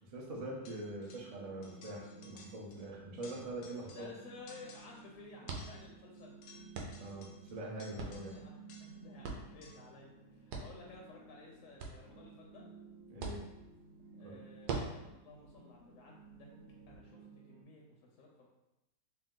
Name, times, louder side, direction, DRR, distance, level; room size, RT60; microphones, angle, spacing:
voice 1, 0.1-4.1 7.0-8.3 13.1-13.4 14.2-14.4, right 1 dB, 50° right, -2 dB, 0.4 m, -43 dB
sound 1, 0.6-17.6, right 5 dB, 65° right, 1.2 m, -57 dB
sound 2, 0.7-1.4 1.6-2.9 3.1-4.2 4.5-5.1 5.5-9.1 9.6-10.0, left 4 dB, 85° left, 1.2 m, -58 dB
sound 3, 2.9-17.0, right 4 dB, 80° right, 1.2 m, -47 dB
voice 2, 3.7-6.4 8.1-12.6 14.1-16.5 16.9-18.5, left 3 dB, 65° left, -1 dB, 0.9 m, -55 dB
3.3 x 2.7 x 3.7 m, 0.93 s
omnidirectional pair, 1.7 m